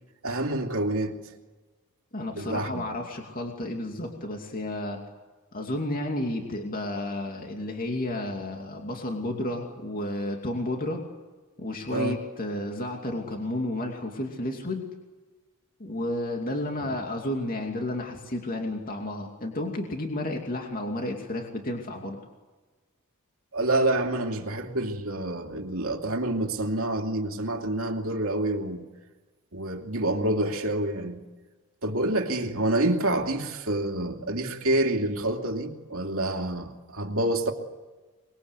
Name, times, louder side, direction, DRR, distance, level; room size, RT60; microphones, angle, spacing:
voice 1, 0.2-1.2 2.4-2.9 11.9-12.2 16.8-16.9 23.5-28.8 29.5-31.2 31.8-37.5, right 1 dB, 65° right, 2.8 m, -27 dB
voice 2, 2.1-5.0 5.5-11.0 11.6-14.8 15.8-22.2, left 1 dB, 40° left, 2.7 m, -32 dB
25.0 x 22.0 x 8.3 m
head